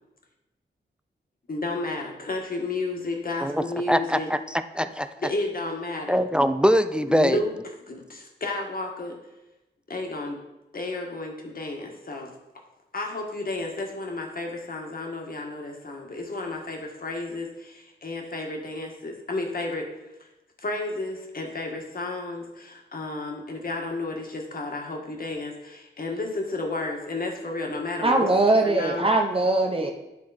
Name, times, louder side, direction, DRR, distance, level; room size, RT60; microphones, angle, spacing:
voice 1, 1.5-4.3 5.2-6.2 7.1-7.5 7.9-9.2 9.9-10.4 10.7-12.3 12.9-19.9 20.6-28.3 28.6-29.1 29.8-29.9, left 2 dB, 50° left, 1 dB, 1.6 m, -32 dB
voice 2, 3.4-5.1 6.1-7.4, equal, 5° right, 11 dB, 0.4 m, -23 dB
voice 3, 28.0-29.9, right 2 dB, 30° right, 2 dB, 0.7 m, -21 dB
10.5 x 4.8 x 4.2 m, 0.98 s
wide cardioid pair, 95°, 19 cm